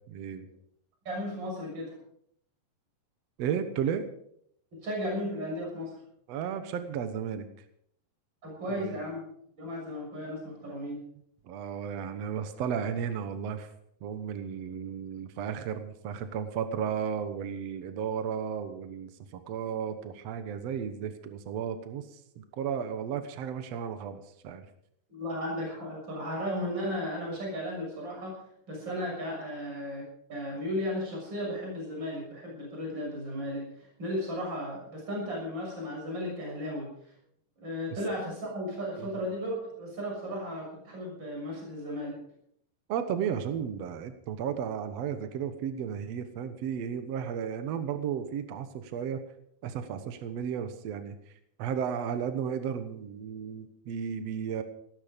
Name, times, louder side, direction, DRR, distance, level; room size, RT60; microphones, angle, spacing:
voice 1, 0.1-0.5 3.4-4.0 6.3-7.5 8.8-9.0 11.4-13.7 14.0-24.7 39.0-39.1 42.9-49.2 49.6-51.3 51.6-54.6, right 8 dB, 80° right, 9 dB, 1.4 m, -34 dB
voice 2, 1.1-2.0 4.7-5.9 8.4-9.2 9.5-11.0 25.1-28.4 28.7-30.0 30.3-36.9 37.6-42.2, equal, 25° right, -2 dB, 6.9 m, -35 dB
17.0 x 13.0 x 5.2 m, 0.70 s
omnidirectional pair, 4.8 m